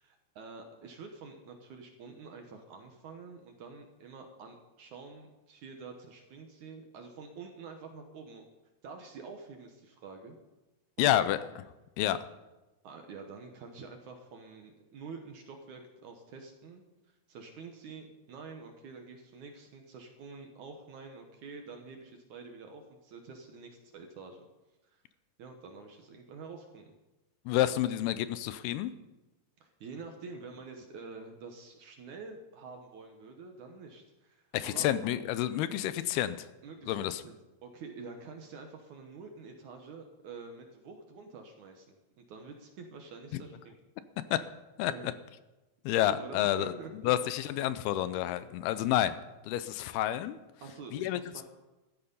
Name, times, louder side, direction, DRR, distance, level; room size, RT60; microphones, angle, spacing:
voice 1, 0.0-8.5 8.8-10.4 11.0-11.3 12.8-16.8 17.3-24.5 24.9-25.0 25.4-26.9 29.6-34.9 36.6-37.4 37.6-43.8 44.9-45.2 46.0-47.1 50.6-51.4, right 4 dB, 65° right, 4 dB, 2.2 m, -47 dB
voice 2, 11.0-11.4 12.0-12.3 27.5-28.9 34.5-36.5 36.9-37.2 43.3-43.4 44.3-44.4 44.8-45.1 45.9-46.7 47.0-49.2 49.4-50.4 50.9-51.2, left 13 dB, 80° left, 14 dB, 2.5 m, -29 dB
14.5 x 13.0 x 5.5 m, 1.1 s
omnidirectional pair, 4.6 m